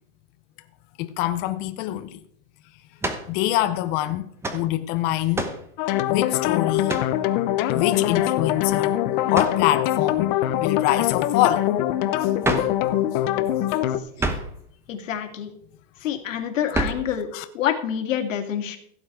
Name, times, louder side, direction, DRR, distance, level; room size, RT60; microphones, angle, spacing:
voice 1, 1.0-2.2 3.3-5.5 6.1-7.0 7.7-9.0 9.3-10.3 10.6-11.7 17.3-17.4, left 14 dB, 25° left, 0.5 m, -25 dB
sound 1, 3.0-3.3 4.4-4.7 5.3-5.7 6.9-7.2 9.3-9.6 12.4-12.8 14.2-14.6 16.7-17.1, right 2 dB, 5° right, 0.9 m, -27 dB
sound 2, 5.8-14.0, left 13 dB, 40° left, 0.9 m, -23 dB
voice 2, 14.9-15.5 16.0-17.3 17.5-18.8, left 9 dB, 80° left, 2.3 m, -27 dB
15.5 x 7.2 x 4.8 m
supercardioid pair, 145°, 38 cm